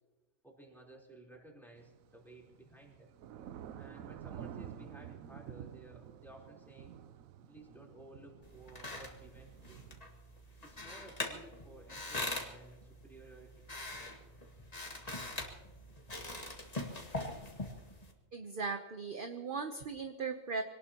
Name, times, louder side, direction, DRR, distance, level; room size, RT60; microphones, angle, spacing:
voice 1, 0.4-3.1 3.8-6.9 7.5-9.8 10.6-13.7, right 2 dB, ahead, -3 dB, 3.7 m, -56 dB
Thunder / Rain, 1.8-10.0, right 9 dB, 85° right, 1.1 m, -50 dB
sound 1, 8.4-18.1, left 2 dB, 30° left, 1.9 m, -43 dB
voice 2, 18.3-20.6, right 4 dB, 45° right, 6 dB, 1.0 m, -38 dB
25.0 x 18.5 x 2.9 m, 1.2 s
omnidirectional pair, 1.4 m